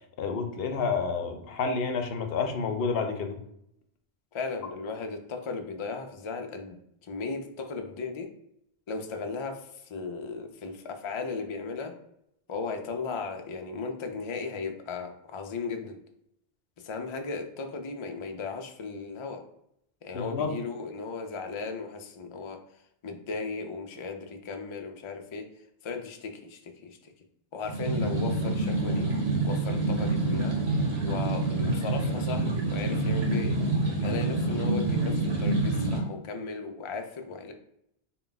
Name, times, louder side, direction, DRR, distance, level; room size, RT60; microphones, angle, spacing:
voice 1, 0.2-3.4 20.1-20.5, left 5 dB, 70° left, 5 dB, 0.8 m, -29 dB
voice 2, 4.3-6.8 7.1-8.3 8.9-11.9 12.5-16.0 16.8-19.4 20.0-22.6 23.0-25.4 25.8-27.1 27.5-29.1 29.4-30.5 31.0-33.6 34.0-37.5, left 4 dB, 50° left, 4 dB, 0.3 m, -36 dB
sound 1, 27.6-36.0, right 2 dB, 85° right, 1.3 m, -27 dB
3.8 x 2.3 x 3.8 m, 0.76 s
omnidirectional pair, 1.1 m